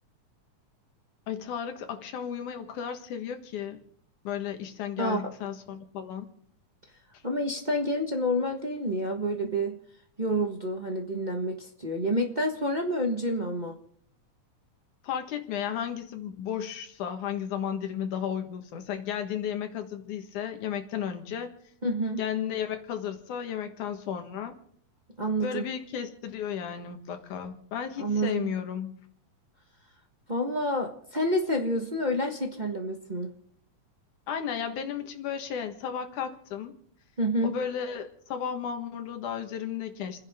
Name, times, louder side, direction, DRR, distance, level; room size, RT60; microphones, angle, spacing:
voice 1, 1.3-3.8 4.2-6.3 15.0-21.5 22.2-24.6 25.4-28.9 34.3-36.7 37.4-40.2, left 8 dB, 85° left, 6 dB, 3.0 m, -34 dB
voice 2, 5.0-5.3 7.2-9.7 10.2-13.8 21.8-22.2 25.2-25.6 28.0-28.5 30.3-33.3 37.2-37.5, equal, 30° right, 1 dB, 0.7 m, -28 dB
30.0 x 10.5 x 3.6 m, 0.63 s
omnidirectional pair, 3.4 m